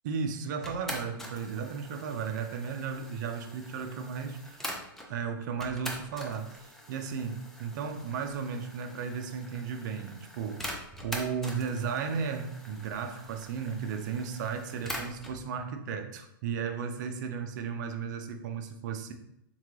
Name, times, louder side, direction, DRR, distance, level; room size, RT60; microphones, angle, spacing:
voice 1, 0.0-4.7 5.1-10.7 11.0-19.1, right 6 dB, 55° right, 6 dB, 0.5 m, -35 dB
sound 1, 0.6-5.1 5.6-15.4, equal, 5° left, 0.4 m, -44 dB
3.7 x 2.2 x 3.1 m, 0.79 s
hypercardioid pair, 130°, 12 cm